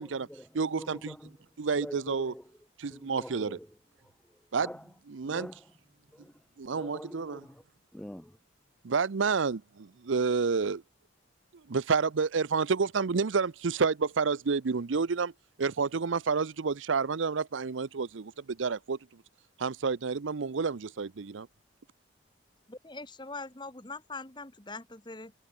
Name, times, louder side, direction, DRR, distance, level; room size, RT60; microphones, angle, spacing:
voice 1, 0.0-4.9 5.2-5.7 6.1-7.6 7.9-8.4, equal, 5° left, 0.6 m, -47 dB
voice 2, 0.5-1.1 1.6-2.3 2.8-3.6 4.5-4.7 5.2-5.5 6.6-7.4 8.8-10.8 11.7-15.3 15.6-19.0 19.6-21.5, right 5 dB, 85° right, 0.6 m, -29 dB
voice 3, 22.7-25.4, left 3 dB, 25° left, 1.8 m, -42 dB
head